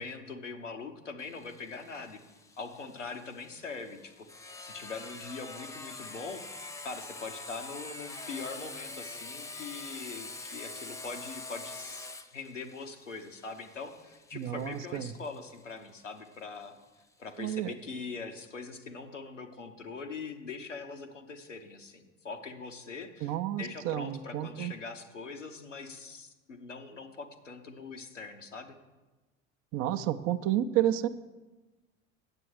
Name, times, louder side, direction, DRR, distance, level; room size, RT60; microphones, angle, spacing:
voice 1, 0.0-2.2 2.6-6.4 6.8-16.8 17.2-28.7, left 4 dB, 85° left, 5 dB, 0.9 m, -42 dB
Sawing, 1.2-16.6, left 3 dB, 10° left, 0.5 m, -45 dB
voice 2, 14.3-15.1 17.4-17.7 23.2-24.7 29.7-31.1, right 12 dB, 40° right, 10 dB, 0.5 m, -30 dB
9.5 x 7.6 x 4.8 m, 1.2 s
figure-of-eight pair, 75°, 37 cm